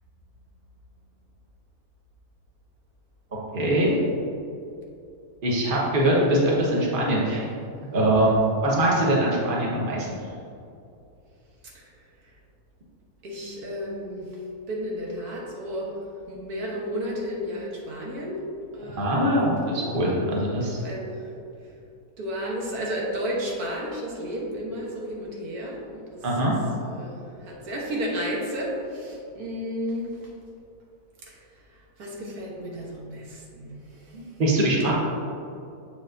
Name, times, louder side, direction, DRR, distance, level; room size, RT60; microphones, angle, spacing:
voice 1, 3.5-4.0 5.4-7.5 7.9-10.2 19.0-20.8 26.2-26.6 34.1-34.9, right 1 dB, 35° right, -4 dB, 1.3 m, -22 dB
voice 2, 13.2-14.4 14.7-16.0 16.3-18.4 18.7-19.4 20.5-21.3 22.2-26.2 26.8-30.3 31.2-31.4 31.7-34.2, equal, 85° right, -3 dB, 1.7 m, -33 dB
7.5 x 6.9 x 2.6 m, 2.6 s
omnidirectional pair, 1.6 m